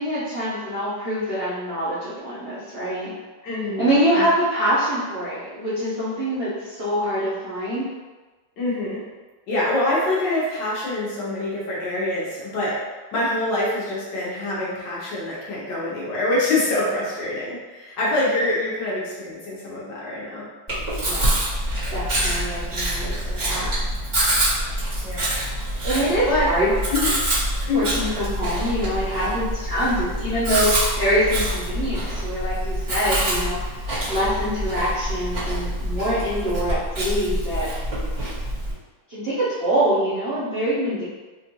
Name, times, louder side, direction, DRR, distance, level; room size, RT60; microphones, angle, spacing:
voice 1, 0.0-3.1 3.8-7.8 21.1-21.3 21.9-23.7 25.8-26.7 27.7-37.7 39.1-41.0, equal, 55° right, -11 dB, 0.6 m, -24 dB
voice 2, 3.4-4.3 8.6-9.0 9.5-12.8 13.1-20.5 22.5-22.7 25.0-25.2 26.3-26.5 26.9-27.1 27.7-27.9, left 2 dB, 65° left, -6 dB, 1.5 m, -25 dB
Chewing mastication, 20.7-38.7, right 1 dB, 25° right, 1.3 m, -26 dB
4.3 x 2.5 x 3.0 m, 1.3 s
omnidirectional pair, 2.2 m